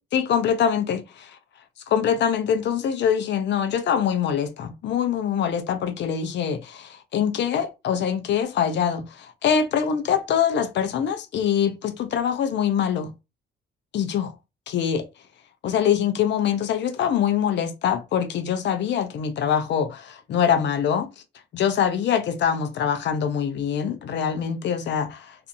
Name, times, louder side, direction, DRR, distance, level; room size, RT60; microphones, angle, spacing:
voice 1, 0.1-1.4 1.9-13.1 13.9-14.3 14.7-15.1 15.6-21.1 21.5-25.4, left 8 dB, 65° left, 0.5 m, -24 dB
2.5 x 2.5 x 2.6 m
cardioid pair, 90°, 20 cm